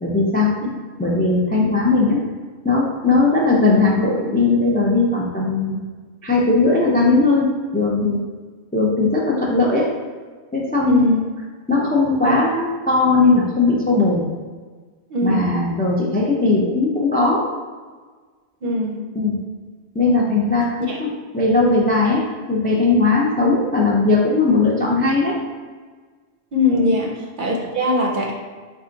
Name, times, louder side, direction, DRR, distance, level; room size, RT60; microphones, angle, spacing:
voice 1, 0.0-0.5 1.0-2.2 2.6-5.8 6.2-8.2 8.7-9.9 10.5-11.1 11.7-14.2 15.2-17.4 19.2-19.4 19.9-20.6 21.0-21.1 21.3-22.2 22.5-25.4 26.7-26.9, left 3 dB, 15° left, -4 dB, 0.3 m, -18 dB
voice 2, 10.9-11.2 15.1-15.6 18.6-19.0 20.8-21.0 26.5-28.3, left 2 dB, 55° right, 0 dB, 0.7 m, -21 dB
4.4 x 2.4 x 3.8 m, 1.5 s
omnidirectional pair, 1.1 m